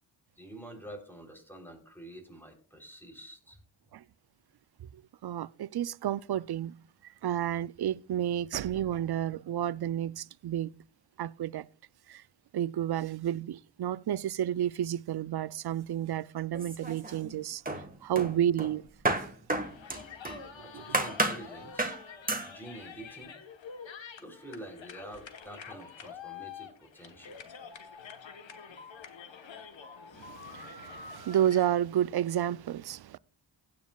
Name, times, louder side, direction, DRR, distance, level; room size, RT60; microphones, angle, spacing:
voice 1, 0.4-3.6 20.6-22.0 22.4-23.4 24.2-27.4, right 1 dB, 5° left, 3.5 m, -47 dB
voice 2, 5.2-6.7 7.2-10.7 11.2-11.7 12.1-12.2 12.5-18.9 20.7-20.8 30.2-33.2, right 11 dB, 60° right, 0.5 m, -31 dB
sound 1, 16.5-17.3 17.7-20.5 20.9-21.4 21.8-22.0 22.3-22.5, right 2 dB, 20° right, 1.6 m, -31 dB
sound 2, 19.6-31.6, left 6 dB, 80° left, 1.2 m, -47 dB
16.0 x 9.5 x 2.3 m
cardioid pair, 60°, 45 cm